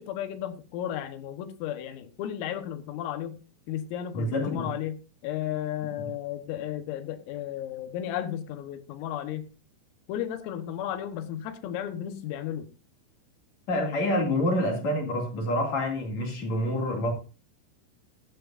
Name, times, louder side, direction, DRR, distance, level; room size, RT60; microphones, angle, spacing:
voice 1, 0.0-3.4 3.7-5.0 5.2-9.5 10.1-12.7, left 11 dB, 85° left, 3.9 m, -34 dB
voice 2, 4.1-4.7 13.7-17.1, left 1 dB, 45° left, 2.8 m, -27 dB
14.0 x 13.0 x 2.6 m
omnidirectional pair, 5.9 m